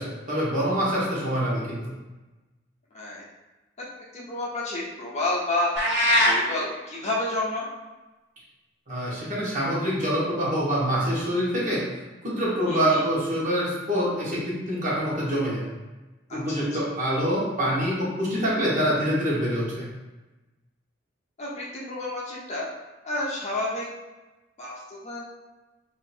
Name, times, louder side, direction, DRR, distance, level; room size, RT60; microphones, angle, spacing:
voice 1, 0.0-1.9 8.9-11.8 12.2-15.7 16.3-19.9, equal, 45° right, -6 dB, 1.1 m, -25 dB
voice 2, 4.1-5.8 6.2-7.7 12.7-13.0 16.3-16.7 21.4-22.7 23.0-23.9 24.6-25.3, left 2 dB, 35° left, -5 dB, 0.7 m, -30 dB
sound 1, 5.8-6.4, left 1 dB, 60° right, 0.8 m, -20 dB
2.7 x 2.5 x 4.2 m, 1.1 s
head